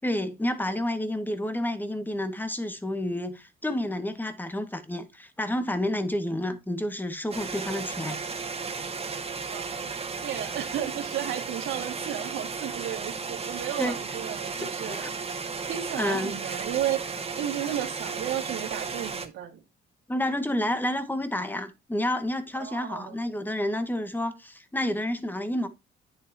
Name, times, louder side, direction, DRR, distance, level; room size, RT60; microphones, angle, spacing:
voice 1, 0.0-8.2 13.8-14.0 14.6-15.1 16.0-16.4 20.1-25.7, left 1 dB, 10° left, 2.0 m, -30 dB
sound 1, 7.3-19.3, right 5 dB, 30° right, 2.3 m, -34 dB
voice 2, 9.5-9.9 10.2-15.0 15.6-17.1 17.4-19.6 22.5-23.2, right 11 dB, 90° right, 2.5 m, -33 dB
10.0 x 8.3 x 3.0 m
cardioid pair, 90°, 20 cm